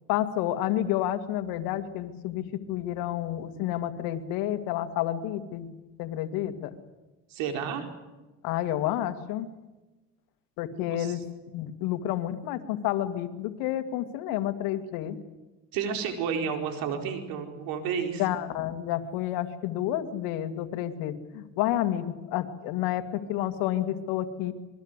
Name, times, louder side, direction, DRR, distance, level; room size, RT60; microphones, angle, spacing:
voice 1, 0.1-5.7 6.0-6.7 8.4-9.5 10.6-11.2 11.5-15.2 18.2-24.5, left 12 dB, 80° left, 7 dB, 2.3 m, -30 dB
voice 2, 7.3-7.9 10.7-11.1 15.7-18.2, right 7 dB, 80° right, 5 dB, 4.7 m, -31 dB
26.0 x 22.0 x 8.3 m, 1.1 s
cardioid pair, 110°, 34 cm